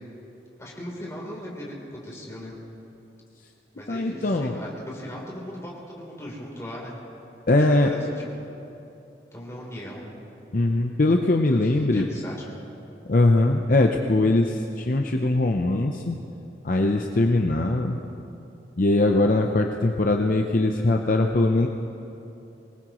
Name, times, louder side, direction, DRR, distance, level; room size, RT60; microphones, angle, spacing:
voice 1, 0.6-2.6 3.8-6.9 7.6-8.4 9.3-10.0 11.5-12.5, equal, 15° left, -4 dB, 3.4 m, -38 dB
voice 2, 3.9-4.6 7.5-7.9 10.5-12.1 13.1-16.2 16.6-18.0 18.8-21.7, left 2 dB, 50° left, 2 dB, 0.7 m, -21 dB
24.0 x 19.5 x 3.1 m, 2.8 s
head